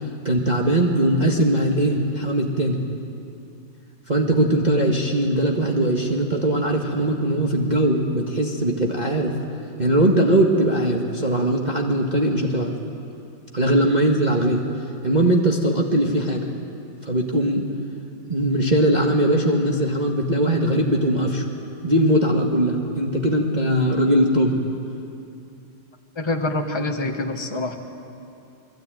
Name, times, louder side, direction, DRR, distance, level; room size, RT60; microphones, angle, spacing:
voice 1, 0.2-2.8 4.1-9.3 9.8-12.7 13.5-14.6 15.0-16.5 17.0-17.7 18.3-21.5 21.8-24.6, right 1 dB, 25° right, 0 dB, 1.8 m, -20 dB
voice 2, 26.2-27.8, left 2 dB, 15° left, 3 dB, 1.6 m, -26 dB
29.5 x 21.0 x 9.2 m, 2.6 s
omnidirectional pair, 1.9 m